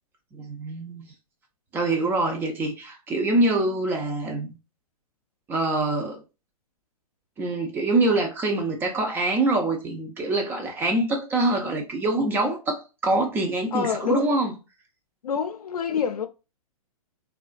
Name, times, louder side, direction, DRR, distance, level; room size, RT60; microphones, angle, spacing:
voice 1, 0.3-1.1 1.7-4.5 5.5-6.2 7.4-14.5, right 2 dB, 10° right, 0.3 m, -25 dB
voice 2, 13.7-14.3 15.2-16.3, left 7 dB, 85° left, 0.5 m, -27 dB
2.3 x 2.2 x 2.3 m
hypercardioid pair, 130°, 19 cm